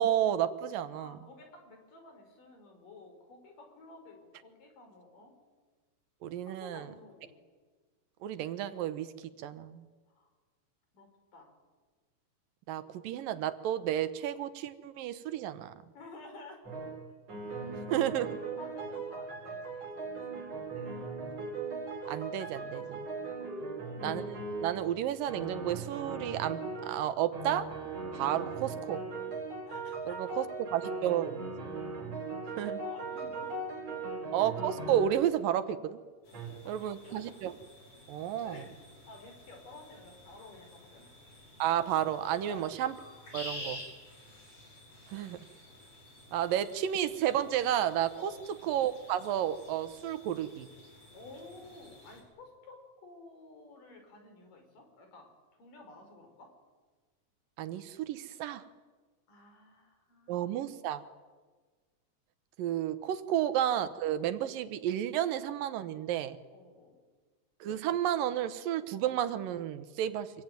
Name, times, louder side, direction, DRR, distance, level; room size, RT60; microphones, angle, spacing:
voice 1, 0.0-1.2 6.2-6.9 8.2-9.1 9.4-9.8 12.7-15.7 17.9-18.4 22.1-23.0 24.0-24.2 24.6-27.7 28.1-29.0 30.1-30.5 30.7-31.5 32.6-32.8 34.3-36.0 36.7-37.6 38.1-38.6 41.6-42.9 43.3-43.8 45.1-45.4 46.3-48.3 48.6-50.7 57.6-58.6 60.3-61.0 62.6-66.4 67.6-70.3, right 11 dB, 85° right, 12 dB, 2.9 m, -31 dB
voice 2, 0.9-5.3 6.4-7.4 10.1-10.3 10.9-11.5 15.9-16.6 17.5-18.1 18.4-21.2 23.1-23.6 28.3-28.4 29.7-30.2 32.5-33.6 33.9-34.2 36.3-37.2 38.1-41.1 42.4-42.7 48.1-48.5 51.1-55.3 55.6-56.5 59.3-60.9 63.3-63.5 66.5-67.0, left 2 dB, 75° left, 4 dB, 6.6 m, -53 dB
sound 1, 16.6-17.0 17.3-24.9 25.3-27.0 27.3-35.2 36.3-36.5, right 3 dB, 50° right, 6.6 m, -39 dB
sound 2, 36.2-52.2, left 1 dB, 45° left, 7.3 m, -51 dB
26.5 x 22.0 x 9.2 m, 1.4 s
omnidirectional pair, 3.8 m